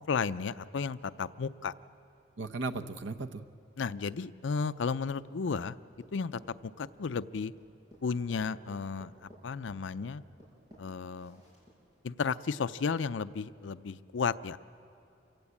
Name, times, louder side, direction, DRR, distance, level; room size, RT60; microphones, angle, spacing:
voice 1, 0.0-1.7 3.8-5.8 6.1-7.5 8.0-10.2 10.8-11.4 12.0-14.6, left 5 dB, 85° left, 14 dB, 0.5 m, -33 dB
voice 2, 2.4-3.4, right 3 dB, 80° right, 7 dB, 0.9 m, -36 dB
sound 1, 5.2-12.0, equal, 20° right, 7.0 m, -57 dB
27.0 x 16.0 x 8.3 m, 2.6 s
head